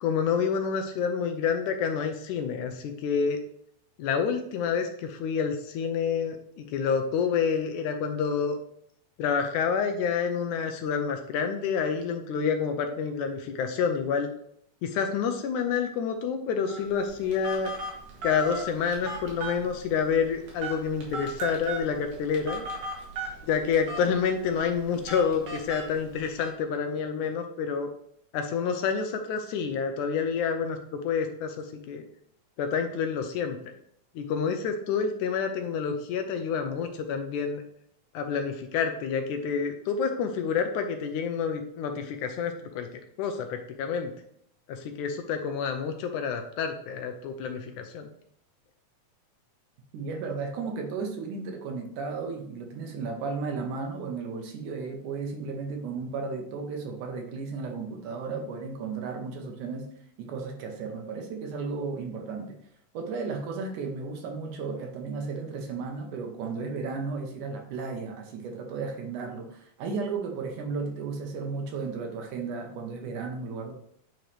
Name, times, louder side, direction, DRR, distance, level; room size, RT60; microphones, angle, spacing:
voice 1, 0.0-3.4 4.0-8.6 9.2-14.3 14.8-17.7 18.2-22.6 23.4-27.9 28.3-32.0 32.6-33.6 34.2-37.6 38.1-42.9 43.2-44.1 44.7-48.1, left 6 dB, 75° left, 6 dB, 2.0 m, -28 dB
Telephone, 16.7-26.5, right 2 dB, 55° right, 2.6 m, -38 dB
voice 2, 49.9-59.9 60.2-62.6 62.9-73.7, right 4 dB, 70° right, 3 dB, 2.4 m, -34 dB
9.1 x 4.4 x 3.3 m, 0.68 s
omnidirectional pair, 3.8 m